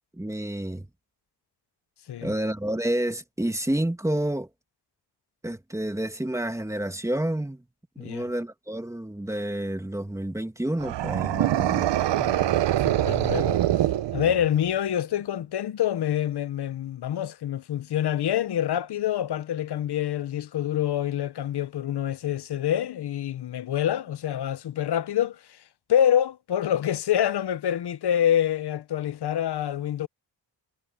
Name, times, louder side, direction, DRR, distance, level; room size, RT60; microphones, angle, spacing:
voice 1, 0.1-0.9 2.2-4.5 5.4-7.6 8.0-11.9, right 1 dB, 5° right, 2.2 m, -29 dB
voice 2, 8.0-8.3 12.2-13.6 14.1-25.6 25.9-30.1, left 10 dB, 65° left, 0.9 m, -26 dB
sound 1, 10.8-14.7, right 13 dB, 80° right, 0.8 m, -24 dB
wide cardioid pair, 120°, 43 cm